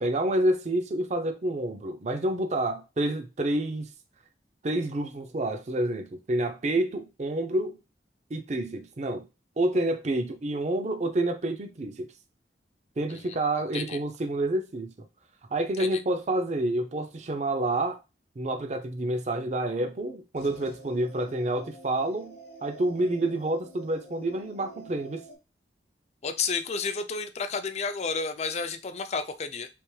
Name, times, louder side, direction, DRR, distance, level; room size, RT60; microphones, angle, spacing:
voice 1, 0.0-3.9 4.6-7.8 8.3-9.3 9.6-12.1 13.0-14.9 15.5-18.0 18.4-25.2, right 1 dB, 40° right, 0.5 m, -28 dB
sound 1, 20.3-25.3, equal, 60° left, 0.9 m, -47 dB
voice 2, 26.2-29.7, left 5 dB, 40° left, 0.4 m, -31 dB
3.4 x 2.9 x 3.1 m
head